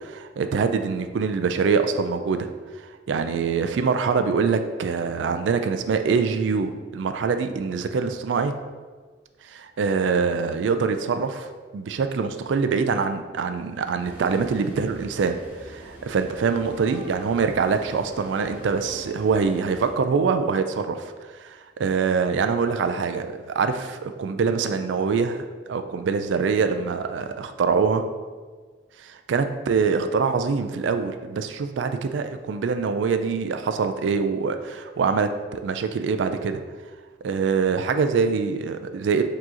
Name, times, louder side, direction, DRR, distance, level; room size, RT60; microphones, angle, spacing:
voice 1, 0.0-8.5 9.4-11.5 11.7-28.0 29.0-36.6 37.2-39.2, right 5 dB, 85° right, 8 dB, 0.3 m, -24 dB
sound 1, 14.0-19.9, right 1 dB, 10° right, 0.9 m, -41 dB
4.7 x 2.9 x 3.8 m, 1.4 s
head